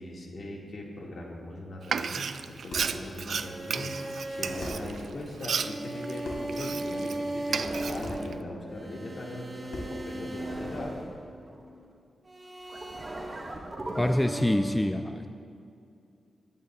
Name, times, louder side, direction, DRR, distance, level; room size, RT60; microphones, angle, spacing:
voice 1, 0.0-11.0, left 1 dB, 65° left, -2 dB, 2.0 m, -40 dB
Frying (food), 1.8-7.2 7.5-8.3, right 6 dB, 70° right, 0.4 m, -33 dB
sound 1, 2.7-3.0 4.2-4.3 4.6-4.9 6.2-6.6 8.0-8.3 9.7-10.0, left 1 dB, 85° left, 2.9 m, -39 dB
sound 2, 3.2-11.7 12.3-14.6, right 1 dB, 30° right, 1.7 m, -37 dB
voice 2, 14.0-15.3, left 1 dB, 10° left, 6 dB, 0.4 m, -26 dB
19.0 x 11.0 x 2.4 m, 2.5 s
wide cardioid pair, 100°, 0 cm